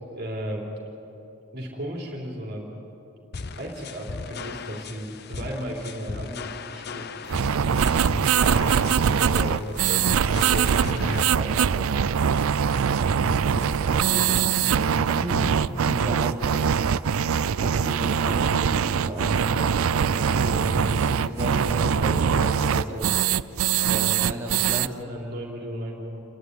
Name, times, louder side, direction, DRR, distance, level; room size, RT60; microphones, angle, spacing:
voice 1, 0.1-0.7 1.5-2.7 3.6-7.1 7.6-11.7 20.1-21.1 24.0-24.2 25.0-26.2, equal, 50° right, -1 dB, 3.6 m, -35 dB
sound 1, 3.3-11.3, left 4 dB, 50° left, 0.6 m, -37 dB
sound 2, 7.3-24.9, right 7 dB, 85° right, 0.4 m, -22 dB
voice 2, 13.2-16.4 17.6-19.8 20.4-23.1 23.8-24.9, right 1 dB, 15° right, -6 dB, 3.0 m, -33 dB
29.5 x 11.5 x 9.7 m, 2.9 s
head